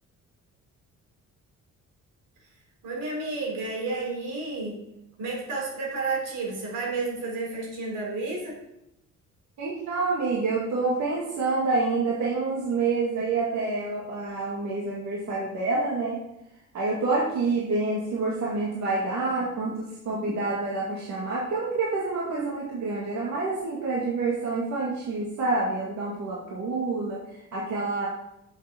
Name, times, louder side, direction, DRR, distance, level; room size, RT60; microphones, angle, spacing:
voice 1, 2.8-4.8 5.2-8.6, right 3 dB, 85° right, -2 dB, 4.0 m, -31 dB
voice 2, 9.6-16.2 16.7-27.2 27.5-28.1, right 3 dB, 65° right, -5 dB, 2.3 m, -27 dB
7.3 x 6.5 x 6.1 m, 0.84 s
cardioid pair, 90°, 30 cm